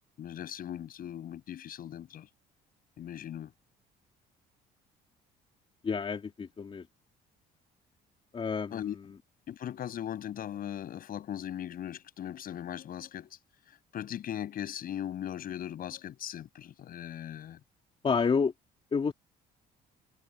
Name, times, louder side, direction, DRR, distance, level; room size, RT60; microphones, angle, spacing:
voice 1, 0.2-2.3 3.0-3.5 8.7-9.0 9.5-13.4 13.9-17.6, left 10 dB, 60° left, 7.6 m, -39 dB
voice 2, 5.8-6.8 8.3-8.8 18.0-18.5 18.9-19.1, left 5 dB, 30° left, 3.1 m, -29 dB
cardioid pair, 110°, 17 cm